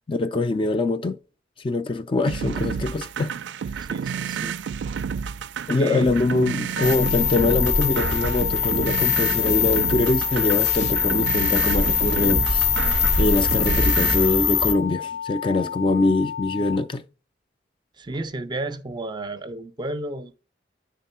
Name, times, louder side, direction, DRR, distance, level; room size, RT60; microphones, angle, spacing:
voice 1, 0.1-1.2 1.6-3.3 5.7-17.0, left 2 dB, 30° left, 0.4 m, -23 dB
sound 1, 2.3-14.3, right 7 dB, 80° right, 0.3 m, -30 dB
voice 2, 3.8-4.6 5.7-6.1 18.0-20.3, right 2 dB, 25° right, 0.5 m, -32 dB
sound 2, 6.8-16.8, left 7 dB, 85° left, 1.5 m, -33 dB
sound 3, 6.8-14.7, left 6 dB, 70° left, 0.7 m, -23 dB
9.0 x 3.7 x 5.5 m
head